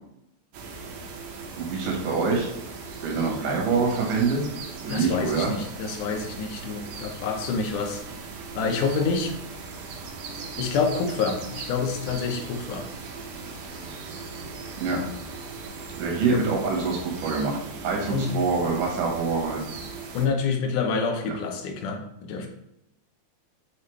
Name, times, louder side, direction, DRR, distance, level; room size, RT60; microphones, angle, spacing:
sound 1, 0.5-20.3, right 4 dB, 70° right, 1.8 m, -39 dB
voice 1, 1.6-2.5 3.0-4.4 4.8-5.5 14.8-15.0 16.0-19.6 21.3-21.4, right 4 dB, 85° right, 0 dB, 2.9 m, -25 dB
voice 2, 4.9-8.0 8.6-9.4 10.6-12.9 16.3-16.5 18.1-18.3 20.1-22.5, left 5 dB, 80° left, 4 dB, 2.3 m, -27 dB
7.4 x 4.1 x 3.2 m, 0.80 s
omnidirectional pair, 3.6 m